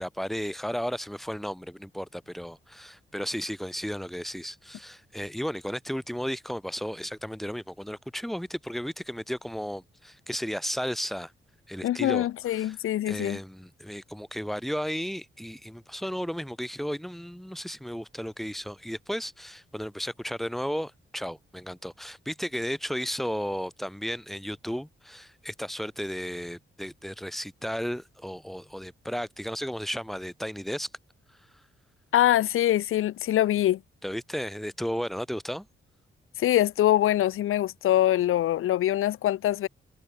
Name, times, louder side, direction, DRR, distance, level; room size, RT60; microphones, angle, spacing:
voice 1, 0.0-11.3 11.7-12.8 13.0-30.9 31.3-31.6 34.0-35.7, equal, ahead, 5.0 m, -34 dB
voice 2, 11.8-13.4 32.1-33.8 36.4-39.7, left 13 dB, 90° left, 0.9 m, -24 dB
cardioid pair, 85°, 21 cm